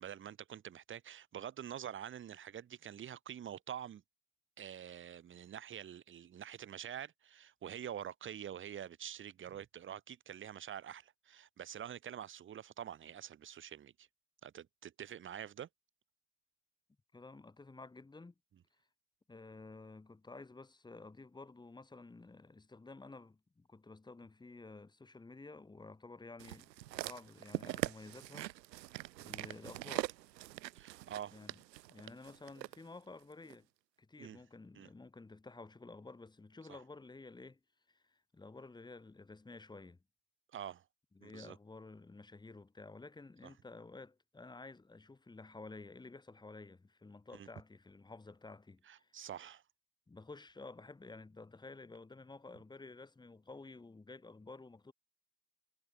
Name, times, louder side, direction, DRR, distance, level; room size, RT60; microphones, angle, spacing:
voice 1, 0.0-4.0 4.6-14.1 14.4-15.7 30.7-31.3 34.2-34.4 34.7-34.9 36.7-36.8 40.5-40.8 41.2-41.6 43.4-43.5 47.3-47.5 48.9-49.6, right 9 dB, 25° right, 3.3 m, -46 dB
voice 2, 17.1-18.3 19.3-28.5 29.2-30.1 31.3-31.6 31.9-33.7 34.0-37.6 37.9-40.0 41.1-49.2 50.1-54.9, left 3 dB, 10° left, 7.1 m, -52 dB
sound 1, 26.4-32.8 33.5-33.6, right 15 dB, 85° right, 0.8 m, -42 dB
hypercardioid pair, 125°, 49 cm